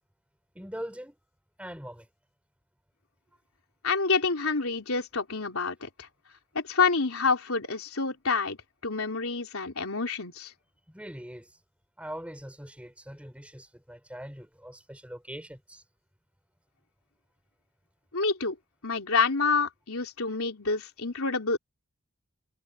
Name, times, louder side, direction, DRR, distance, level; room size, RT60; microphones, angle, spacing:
voice 1, 0.5-1.1 1.6-2.1 10.9-11.6 12.0-15.8, equal, 5° right, 5.0 m, -42 dB
voice 2, 3.8-6.1 6.5-8.6 8.8-10.5 18.1-18.6 18.8-21.6, left 4 dB, 75° left, 3.5 m, -28 dB
head